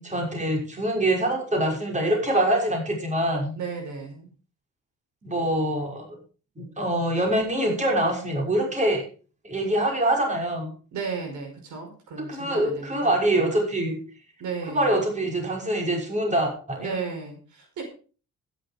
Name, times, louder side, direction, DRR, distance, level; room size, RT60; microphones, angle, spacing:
voice 1, 0.1-3.5 5.2-6.2 6.6-9.0 9.4-10.7 12.2-14.0 14.7-17.0, right 1 dB, 25° right, 1 dB, 6.0 m, -24 dB
voice 2, 3.5-4.3 10.9-13.5 14.4-15.0 16.8-17.8, right 5 dB, 75° right, 4 dB, 5.0 m, -34 dB
12.5 x 11.0 x 5.0 m, 0.38 s
cardioid pair, 90°, 30 cm